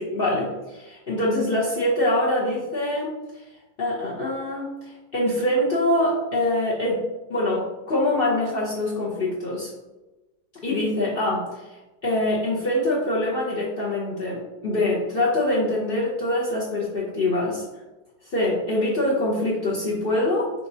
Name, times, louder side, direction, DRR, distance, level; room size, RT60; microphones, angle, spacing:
voice 1, 0.0-3.1 3.8-4.7 5.1-7.0 7.3-9.7 10.6-11.5 12.0-17.6 18.3-20.5, left 1 dB, 60° left, -7 dB, 0.5 m, -24 dB
5.8 x 2.9 x 2.7 m, 1.1 s
omnidirectional pair, 2.2 m